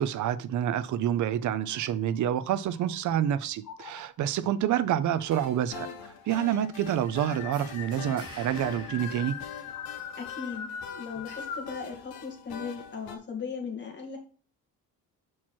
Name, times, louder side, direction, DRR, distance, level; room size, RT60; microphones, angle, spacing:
voice 1, 0.0-5.9 6.3-9.4, right 10 dB, 55° right, 0.6 m, -28 dB
sound 1, 1.6-3.1 3.6-4.3 5.3-5.4 5.6-5.7 6.1-11.8, left 7 dB, 60° left, 1.0 m, -42 dB
sound 2, 5.2-13.2, left 7 dB, 85° left, 1.2 m, -44 dB
sound 3, 7.5-10.2, equal, 15° right, 3.1 m, -48 dB
voice 2, 10.2-14.2, left 5 dB, 30° left, 2.2 m, -38 dB
5.9 x 4.6 x 4.4 m
cardioid pair, 145°, 36 cm